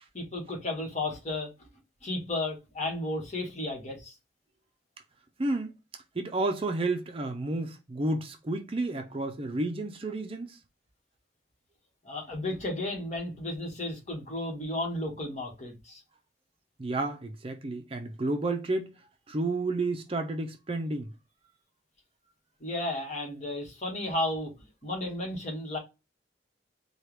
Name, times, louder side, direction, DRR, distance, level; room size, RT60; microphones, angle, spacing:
voice 1, 0.1-1.5 2.0-4.1 12.0-16.0 22.6-24.5 24.8-25.8, left 1 dB, 40° left, 1.4 m, -33 dB
voice 2, 5.4-5.7 6.1-10.6 16.8-18.9 19.3-21.1, right 2 dB, 30° right, 0.5 m, -31 dB
4.5 x 2.3 x 3.3 m
head